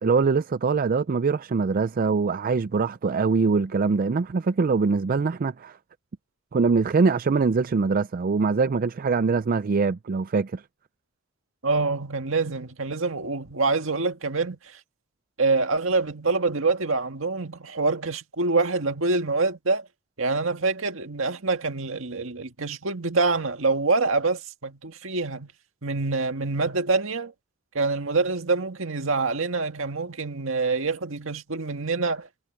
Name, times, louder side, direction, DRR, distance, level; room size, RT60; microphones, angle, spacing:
voice 1, 0.0-5.8 6.5-10.6, right 4 dB, 45° right, 0.4 m, -23 dB
voice 2, 11.6-14.8 15.4-19.9 20.2-25.5 25.8-27.3 27.7-32.3, right 3 dB, 75° right, 1.9 m, -26 dB
head